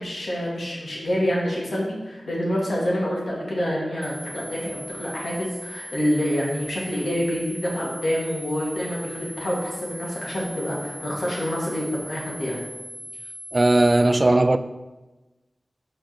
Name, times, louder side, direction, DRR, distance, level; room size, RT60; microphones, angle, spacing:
voice 1, 0.0-12.6, equal, 75° left, 2.2 m, -27 dB
sound 1, 4.0-14.0, equal, 20° left, 2.1 m, -39 dB
voice 2, 13.5-14.6, right 2 dB, 40° right, 0.3 m, -17 dB
5.6 x 4.3 x 6.0 m
wide cardioid pair, 60°, 0 cm